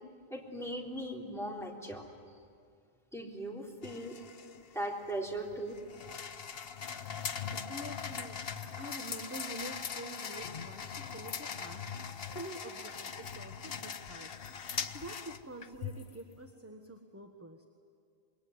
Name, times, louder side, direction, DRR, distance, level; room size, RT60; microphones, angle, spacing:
voice 1, 0.3-2.0 3.1-4.2 4.6-5.8, right 1 dB, 5° left, -2 dB, 3.7 m, -39 dB
sound 1, 3.8-16.2, left 7 dB, 70° left, 1.1 m, -41 dB
sound 2, 7.3-7.6 8.0-9.5 9.8-10.3 10.8-11.1 11.6-11.8 12.4-12.6, left 1 dB, 45° left, 8.1 m, -60 dB
voice 2, 7.4-14.3 14.6-17.7, right 1 dB, 15° right, 3 dB, 1.4 m, -47 dB
26.5 x 22.0 x 9.6 m, 2.2 s
omnidirectional pair, 1.0 m